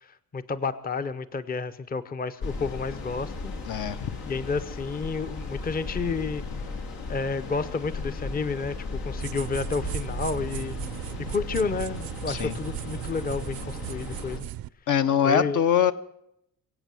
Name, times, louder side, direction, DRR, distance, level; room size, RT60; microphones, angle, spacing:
voice 1, 0.0-3.5 4.3-6.4 7.1-10.8 11.3-14.5 15.2-15.6, left 4 dB, 25° left, 12 dB, 0.7 m, -30 dB
sound 1, 2.4-14.4, left 3 dB, 85° left, 2.7 m, -36 dB
voice 2, 3.7-4.1 12.3-12.6 14.9-15.9, left 8 dB, 55° left, 11 dB, 0.9 m, -23 dB
sound 2, 9.2-14.7, right 14 dB, 75° right, 0.6 m, -36 dB
23.0 x 8.3 x 7.5 m, 0.78 s
cardioid pair, 140°, 36 cm